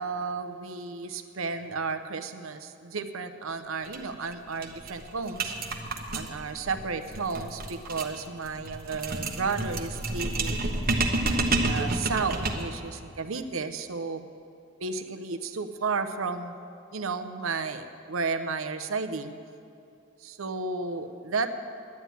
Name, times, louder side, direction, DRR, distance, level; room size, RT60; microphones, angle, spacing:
voice 1, 0.0-5.5 6.1-10.7 11.3-14.2 14.8-16.6 16.9-19.3 20.2-21.5, right 4 dB, 85° right, 9 dB, 0.8 m, -33 dB
sound 1, 3.8-4.0 4.3-4.4 4.6-12.8, right 2 dB, 45° right, 1.1 m, -30 dB
10.5 x 9.2 x 9.1 m, 2.5 s
head